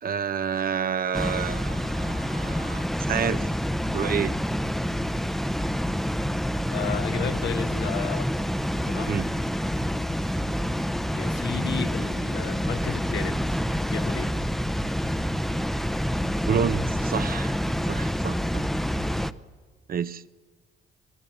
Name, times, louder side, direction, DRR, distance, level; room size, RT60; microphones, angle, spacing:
voice 1, 0.0-3.5 3.9-4.3 9.1-9.3 16.4-17.6 17.9-18.6 19.9-20.2, right 7 dB, 50° right, 0.8 m, -29 dB
Water, 1.1-19.3, equal, ahead, 0.8 m, -27 dB
voice 2, 6.7-8.5 8.9-9.2 11.1-13.6 13.9-14.3, left 8 dB, 65° left, 1.4 m, -34 dB
25.5 x 19.5 x 9.2 m
cardioid pair, 90°, 20 cm